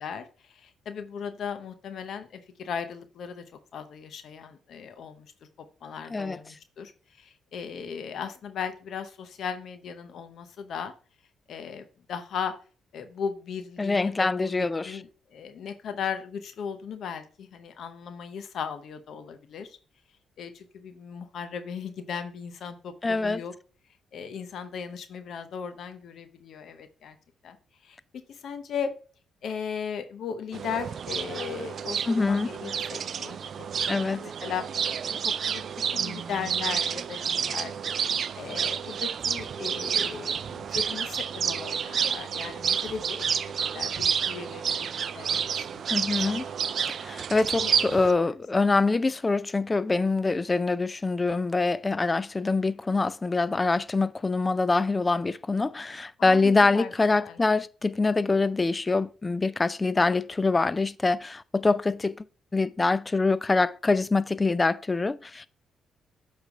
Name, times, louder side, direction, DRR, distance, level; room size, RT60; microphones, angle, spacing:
voice 1, 0.0-3.4 3.7-5.3 5.8-6.9 7.2-10.9 11.5-12.5 12.9-19.8 20.4-23.5 24.1-27.2 27.4-27.6 27.8-28.0 28.3-28.9 29.4-34.6 35.2-35.6 35.9-37.7 38.4-43.3 43.6-46.5 47.6-47.8 56.2-57.4, left 7 dB, 65° left, 0.8 m, -37 dB
voice 2, 13.8-15.0 23.0-23.4 32.1-32.5 33.9-34.2 45.9-46.4 46.9-62.3 62.5-65.5, left 3 dB, 25° left, 0.3 m, -25 dB
sound 1, 30.5-48.1, right 7 dB, 55° right, 0.4 m, -30 dB
8.1 x 3.4 x 4.6 m
cardioid pair, 90°, 0 cm